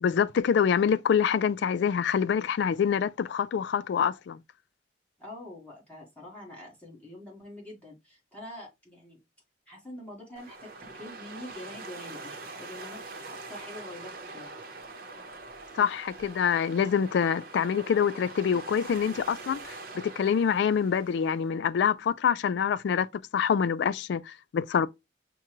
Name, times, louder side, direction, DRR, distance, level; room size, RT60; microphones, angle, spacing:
voice 1, 0.0-4.4 15.7-23.1 23.3-24.9, left 7 dB, 65° left, 0.3 m, -26 dB
voice 2, 5.2-9.2 9.7-14.5, left 1 dB, 10° left, 1.5 m, -45 dB
sound 1, 10.4-21.5, right 3 dB, 55° right, 0.8 m, -44 dB
5.8 x 2.2 x 3.0 m
head